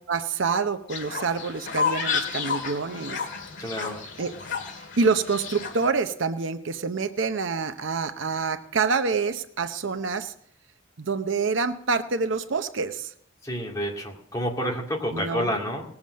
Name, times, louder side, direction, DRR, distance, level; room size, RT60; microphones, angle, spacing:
voice 1, 0.1-3.2 4.2-4.3 4.8-10.3 11.0-13.1 15.1-15.5, right 4 dB, 65° right, 10 dB, 0.7 m, -27 dB
Fowl, 0.9-5.9, left 5 dB, 60° left, 2.1 m, -31 dB
voice 2, 3.6-4.0 13.4-15.8, equal, 15° left, -1 dB, 2.3 m, -29 dB
19.0 x 7.3 x 6.3 m, 0.69 s
head